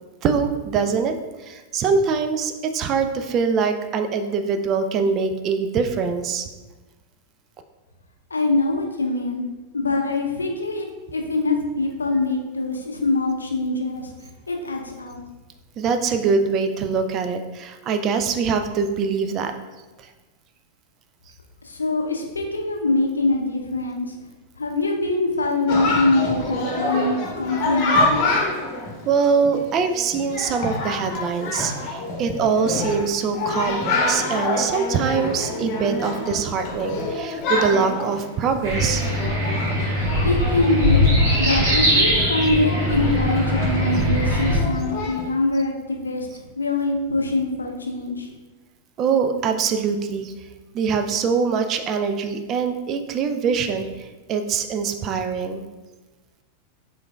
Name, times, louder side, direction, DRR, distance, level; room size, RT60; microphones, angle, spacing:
voice 1, 0.2-6.4 15.8-19.5 29.0-39.1 49.0-50.3 50.7-55.6, right 5 dB, 35° right, 7 dB, 0.4 m, -23 dB
voice 2, 8.3-9.4 9.7-14.1 14.5-15.2 21.6-24.1 24.6-28.4 40.2-41.1 41.4-46.3 46.6-48.3, left 2 dB, 75° left, 2 dB, 0.5 m, -23 dB
Chatter, 25.7-45.3, left 2 dB, 40° left, 0.9 m, -27 dB
sound 1, 38.6-44.6, equal, 50° right, 1.4 m, -21 dB
4.8 x 3.9 x 2.2 m, 1.2 s
figure-of-eight pair, 90°, 0 cm